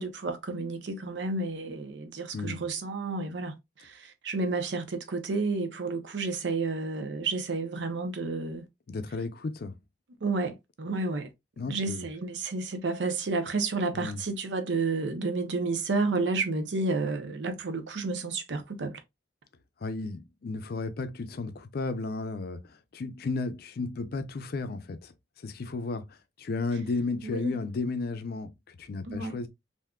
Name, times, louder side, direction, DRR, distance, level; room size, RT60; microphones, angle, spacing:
voice 1, 0.0-8.6 10.2-11.3 11.7-19.0 27.2-27.5 29.1-29.4, right 3 dB, 85° right, 0.6 m, -31 dB
voice 2, 2.3-2.6 8.9-9.7 11.6-12.1 13.9-14.2 19.8-25.1 25.4-29.5, left 3 dB, 60° left, 0.4 m, -34 dB
3.5 x 2.6 x 2.3 m
head